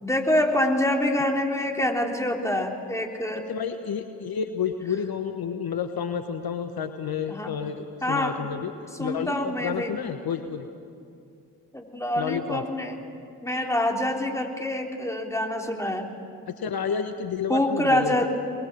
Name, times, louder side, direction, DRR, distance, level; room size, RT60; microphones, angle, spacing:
voice 1, 0.0-3.5 7.3-7.5 8.0-8.4 8.9-9.9 11.7-13.0 13.4-16.1 17.5-18.3, left 1 dB, 5° left, 1 dB, 3.6 m, -26 dB
voice 2, 3.5-8.7 9.0-10.7 12.2-12.6 16.5-18.3, left 7 dB, 50° left, 7 dB, 1.3 m, -30 dB
24.5 x 21.0 x 7.7 m, 2.5 s
hypercardioid pair, 45°, 46 cm